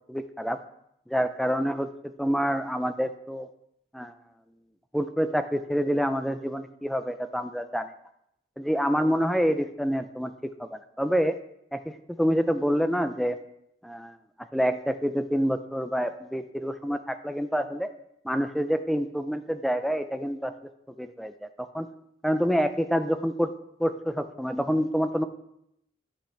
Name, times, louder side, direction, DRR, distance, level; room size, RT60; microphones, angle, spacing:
voice 1, 0.1-0.6 1.1-3.5 3.9-4.1 4.9-7.9 8.6-11.3 11.7-13.4 13.8-14.2 14.5-17.9 18.2-20.5 21.0-21.9 22.2-23.5 23.8-25.2, equal, ahead, 8 dB, 0.4 m, -27 dB
13.0 x 5.5 x 3.3 m, 0.77 s
head